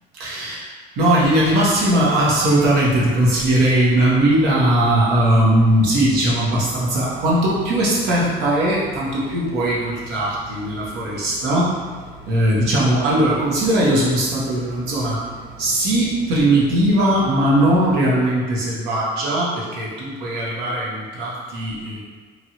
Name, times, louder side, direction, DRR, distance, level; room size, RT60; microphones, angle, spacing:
voice 1, 0.2-0.7 1.0-11.7 12.3-15.2 15.6-22.0, right 1 dB, 90° right, -6 dB, 0.9 m, -19 dB
sound 1, 1.2-18.0, right 2 dB, 15° right, 0.9 m, -41 dB
3.0 x 2.5 x 2.8 m, 1.5 s
cardioid pair, 110°, 17 cm